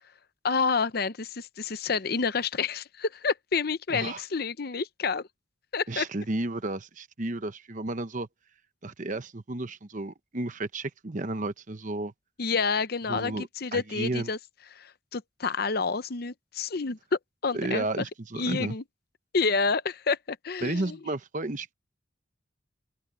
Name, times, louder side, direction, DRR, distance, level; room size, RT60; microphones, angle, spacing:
voice 1, 0.4-5.3 5.7-6.1 12.4-14.4 14.7-17.0 17.4-17.9 18.3-18.8 19.3-21.0, left 4 dB, 55° left, 0.7 m, -29 dB
voice 2, 3.9-4.2 5.9-8.3 8.8-12.1 13.1-14.3 17.5-18.8 20.6-21.7, right 2 dB, 40° right, 1.0 m, -32 dB
open air
head